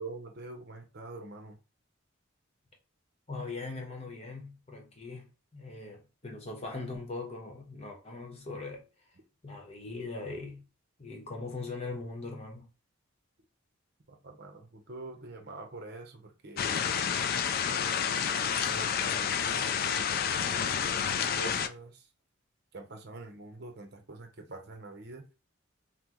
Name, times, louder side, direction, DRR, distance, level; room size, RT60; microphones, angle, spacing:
voice 1, 0.0-1.6 14.1-16.6 18.5-19.8 20.5-22.1 22.7-25.2, right 2 dB, 50° right, 0.9 m, -45 dB
voice 2, 3.3-8.8 9.4-10.6 11.0-12.6, left 3 dB, 30° left, 1.0 m, -40 dB
sound 1, 16.6-21.7, left 7 dB, 45° left, 0.3 m, -29 dB
5.8 x 2.1 x 3.0 m
head